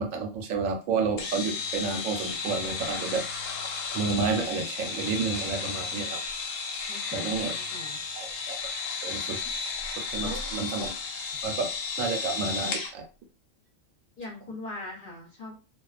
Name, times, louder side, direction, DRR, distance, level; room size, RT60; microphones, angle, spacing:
voice 1, 0.0-3.2 3.9-6.2 7.1-7.5 8.1-8.6 9.0-9.4 10.1-10.9 11.4-11.7 12.0-13.1, right 4 dB, 90° right, 4 dB, 1.0 m, -30 dB
sound 1, 1.2-12.9, left 5 dB, 85° left, 1.0 m, -33 dB
voice 2, 6.9-8.1 10.2-10.5 14.2-15.6, left 2 dB, 50° left, -3 dB, 0.7 m, -41 dB
2.4 x 2.2 x 2.4 m, 0.32 s
omnidirectional pair, 1.4 m